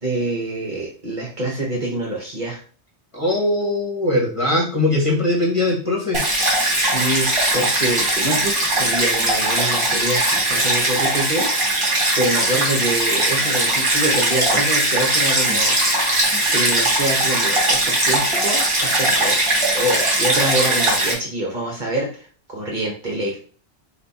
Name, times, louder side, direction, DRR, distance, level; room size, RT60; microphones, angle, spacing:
voice 1, 0.0-2.6 6.7-16.1 16.5-23.4, right 1 dB, 45° right, -3 dB, 1.1 m, -26 dB
voice 2, 3.1-6.2, left 2 dB, 30° left, -3 dB, 1.2 m, -20 dB
Stream, 6.1-21.1, right 1 dB, 30° right, 1.3 m, -19 dB
4.2 x 2.5 x 4.1 m, 0.41 s
omnidirectional pair, 1.1 m